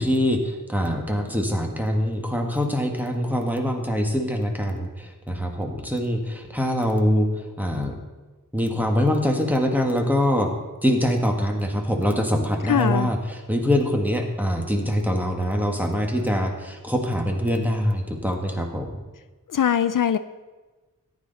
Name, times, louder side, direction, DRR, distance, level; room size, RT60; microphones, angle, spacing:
voice 1, 0.0-7.3 7.6-7.9 8.5-10.5 10.8-19.0, equal, 5° right, 2 dB, 1.8 m, -24 dB
voice 2, 12.7-13.1 19.5-20.2, left 9 dB, 70° left, 13 dB, 0.5 m, -21 dB
14.5 x 10.0 x 4.1 m, 1.2 s
wide cardioid pair, 70°, 34 cm